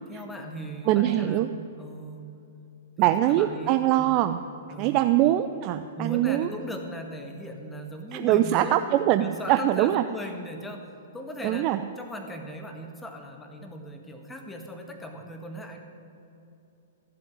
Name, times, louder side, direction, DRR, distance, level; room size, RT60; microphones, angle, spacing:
voice 1, 0.1-1.5 1.8-2.4 3.0-4.1 4.7-5.1 6.0-8.8 9.2-11.7 12.0-15.8, equal, 10° left, 3 dB, 1.7 m, -38 dB
voice 2, 0.9-1.5 3.0-4.4 4.8-6.5 8.1-10.0 11.4-11.8, right 13 dB, 35° right, 10 dB, 0.5 m, -23 dB
14.0 x 7.8 x 9.4 m, 2.8 s
figure-of-eight pair, 110°, 0 cm